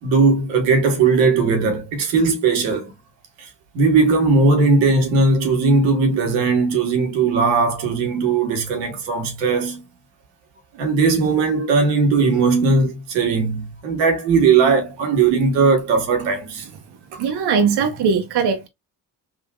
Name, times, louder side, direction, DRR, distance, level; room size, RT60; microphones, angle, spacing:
voice 1, 0.0-2.9 3.4-3.5 3.7-9.8 10.7-16.7, right 4 dB, 90° right, 1.2 m, -18 dB
voice 2, 17.2-18.7, right 6 dB, 65° right, 0.9 m, -20 dB
3.7 x 2.6 x 2.3 m
supercardioid pair, 65°, 43 cm